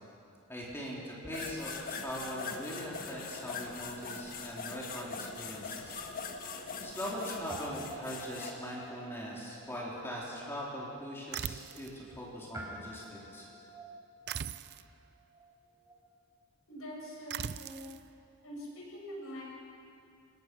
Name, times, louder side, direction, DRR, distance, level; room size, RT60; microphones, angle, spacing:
voice 1, 0.5-6.0 6.8-13.5, equal, 10° left, -5 dB, 3.7 m, -41 dB
sound 1, 1.3-8.5, left 4 dB, 40° left, 1.7 m, -42 dB
Guitar, 5.9-7.2 7.5-16.1, right 1 dB, 15° right, 4.5 m, -50 dB
sound 2, 11.3-12.0 14.3-14.9 17.3-18.0, right 8 dB, 45° right, 0.5 m, -39 dB
voice 2, 16.7-17.9 18.4-19.4, equal, 70° left, -3 dB, 7.6 m, -44 dB
28.5 x 18.5 x 6.2 m, 2.5 s
head